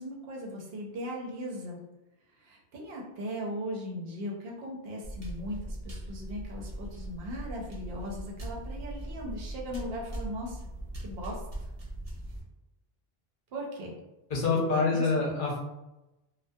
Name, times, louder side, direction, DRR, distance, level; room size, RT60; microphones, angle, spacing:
voice 1, 0.0-1.8 2.4-10.6 11.0-11.4 13.5-14.0 14.5-15.1, equal, 70° right, -1 dB, 0.9 m, -38 dB
sound 1, 5.0-12.4, right 1 dB, 40° right, 0.6 m, -40 dB
voice 2, 14.3-15.6, left 4 dB, 60° left, -2 dB, 0.7 m, -26 dB
2.2 x 2.2 x 2.6 m, 0.97 s
omnidirectional pair, 1.1 m